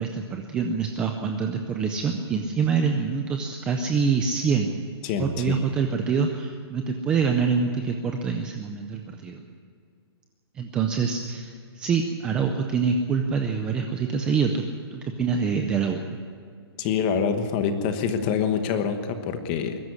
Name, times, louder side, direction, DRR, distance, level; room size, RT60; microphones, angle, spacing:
voice 1, 0.0-4.7 5.2-9.4 10.5-14.6 14.9-16.0, right 5 dB, 5° right, 4 dB, 0.5 m, -25 dB
voice 2, 5.0-5.6 16.8-19.8, left 7 dB, 20° left, 8 dB, 1.2 m, -26 dB
21.5 x 13.0 x 9.7 m, 2.3 s
hypercardioid pair, 175°, 14 cm